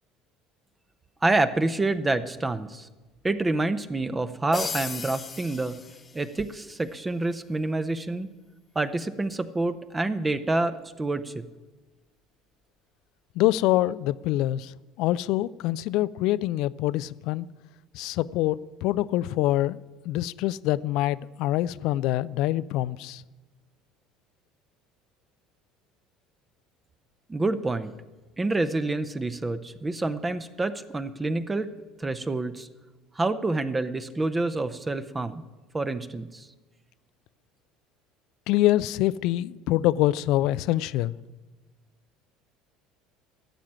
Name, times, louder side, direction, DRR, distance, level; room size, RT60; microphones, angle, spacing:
voice 1, 1.2-2.9 3.2-5.7 6.1-8.3 8.7-11.4 27.3-27.9 28.4-31.7 32.0-32.7 33.1-35.4 35.7-36.5, right 2 dB, 20° right, 11 dB, 0.8 m, -27 dB
sound 1, 4.5-6.6, left 5 dB, 30° left, 1.1 m, -36 dB
voice 2, 13.4-14.7 15.0-17.5 17.9-19.8 20.0-23.2 38.5-41.2, left 15 dB, 60° left, 19 dB, 0.4 m, -25 dB
14.5 x 7.4 x 9.5 m, 1.2 s
hypercardioid pair, 65°, 0 cm